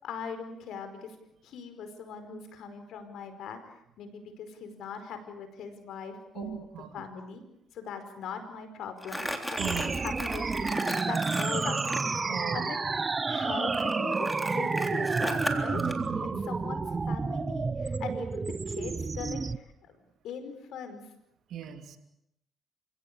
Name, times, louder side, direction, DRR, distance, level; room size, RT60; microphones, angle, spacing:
voice 1, 0.0-1.1 1.4-6.7 6.9-7.4 7.7-10.7 11.1-15.8 16.4-20.0 20.2-21.0, left 6 dB, 80° left, 9 dB, 4.9 m, -41 dB
voice 2, 6.3-7.0 9.6-9.9 12.3-12.7 15.7-16.4 21.5-22.0, right 9 dB, 70° right, 7 dB, 3.0 m, -37 dB
Crumpling crinkling, 9.0-12.1 13.7-16.0, equal, 5° left, 3.6 m, -36 dB
sound 1, 9.6-19.6, right 4 dB, 30° right, 0.8 m, -30 dB
28.5 x 17.0 x 8.8 m, 0.80 s
cardioid pair, 90°, 0 cm